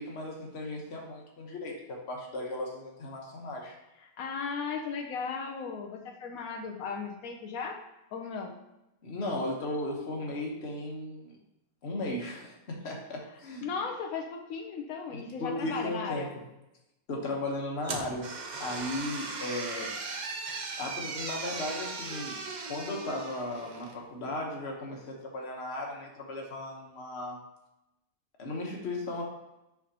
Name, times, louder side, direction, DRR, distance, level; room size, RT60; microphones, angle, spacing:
voice 1, 0.0-3.7 9.0-11.4 11.8-13.7 15.1-16.4 17.1-18.3 18.6-19.9 20.8-22.4 22.7-27.4 28.4-29.2, left 1 dB, 50° left, 0 dB, 1.4 m, -36 dB
voice 2, 4.0-7.8 8.1-8.5 13.6-16.3, left 5 dB, 85° left, 1 dB, 1.1 m, -36 dB
sound 1, 17.8-24.0, right 4 dB, 45° right, 0.6 m, -38 dB
6.0 x 5.9 x 2.9 m, 0.92 s
omnidirectional pair, 1.5 m